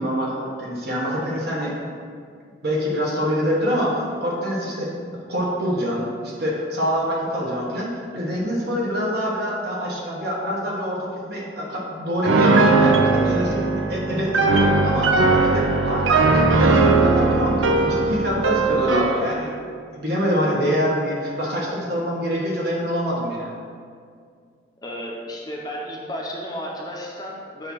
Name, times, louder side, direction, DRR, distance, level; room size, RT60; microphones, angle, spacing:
voice 1, 0.0-1.8 2.6-4.9 5.3-13.6 13.9-15.1 15.5-19.5 19.9-23.5, equal, 60° right, -4 dB, 1.2 m, -25 dB
Piano, 12.3-19.2, right 3 dB, 85° right, 0.5 m, -18 dB
voice 2, 24.8-27.7, equal, 20° left, -2 dB, 0.7 m, -33 dB
6.8 x 2.8 x 5.7 m, 2.1 s
head